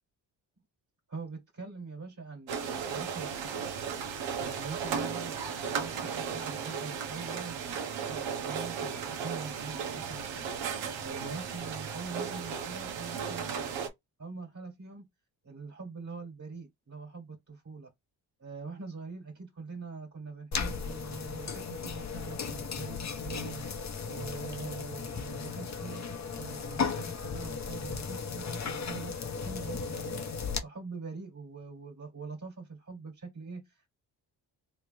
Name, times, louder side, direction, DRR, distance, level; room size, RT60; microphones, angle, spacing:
voice 1, 1.1-3.5 4.4-13.8 14.2-15.1 15.4-17.9 18.4-23.6 24.1-30.3 30.6-33.9, right 4 dB, 40° right, 1.8 m, -43 dB
sound 1, 2.5-13.9, right 6 dB, 80° right, 1.1 m, -35 dB
sound 2, 20.5-30.6, left 5 dB, 40° left, 0.9 m, -36 dB
3.2 x 3.2 x 3.3 m
supercardioid pair, 60°, 45 cm